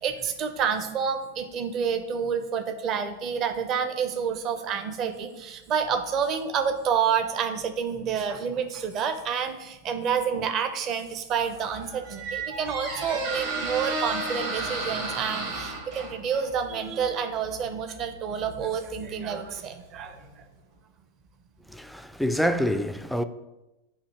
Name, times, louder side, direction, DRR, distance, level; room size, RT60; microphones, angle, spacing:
voice 1, 0.0-20.5, right 7 dB, 35° right, 0.7 m, -29 dB
Squeak, 11.4-20.2, right 3 dB, 55° right, 1.5 m, -34 dB
voice 2, 21.7-23.2, equal, ahead, 0.4 m, -26 dB
8.1 x 2.8 x 5.7 m
figure-of-eight pair, 90°, 0 cm